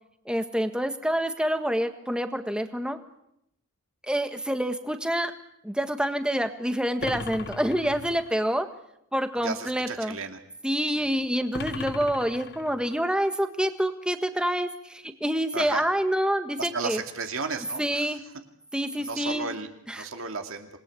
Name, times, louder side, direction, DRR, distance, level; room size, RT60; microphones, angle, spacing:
voice 1, 0.2-3.0 4.0-5.3 5.6-8.7 9.1-10.2 10.6-17.0 17.8-18.2 18.7-19.6 19.9-20.1, equal, 5° right, 8 dB, 1.5 m, -27 dB
sound 1, 7.0-8.5 11.5-13.0, left 3 dB, 50° left, 1.0 m, -38 dB
voice 2, 9.4-10.4 10.9-11.2 15.5-15.8 16.6-18.2 19.0-19.7 19.9-20.7, right 4 dB, 60° right, 5 dB, 2.5 m, -34 dB
27.0 x 20.5 x 8.4 m, 0.78 s
head